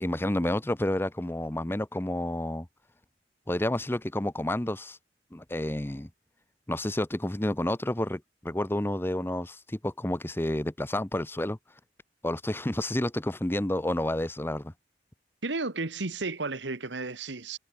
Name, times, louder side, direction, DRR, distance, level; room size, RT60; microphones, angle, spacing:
voice 1, 0.0-2.7 3.5-5.0 5.3-6.1 6.7-11.6 12.2-14.7, left 1 dB, 15° left, 0.8 m, -30 dB
voice 2, 15.4-17.6, right 3 dB, 85° right, 1.7 m, -33 dB
head